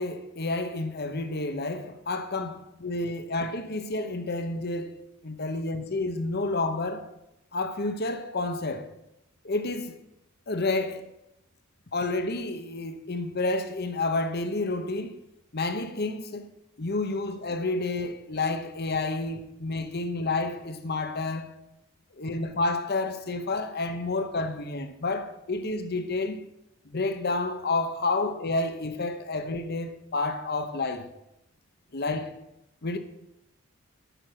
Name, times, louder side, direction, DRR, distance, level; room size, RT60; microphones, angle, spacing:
voice 1, 0.0-7.1 7.5-8.9 9.4-10.0 10.5-11.0 11.9-15.2 15.5-16.5 16.8-21.5 22.1-26.4 26.8-31.1 31.9-32.4 32.8-33.0, left 2 dB, 50° left, 0.9 m, -30 dB
10.0 x 6.1 x 6.2 m
head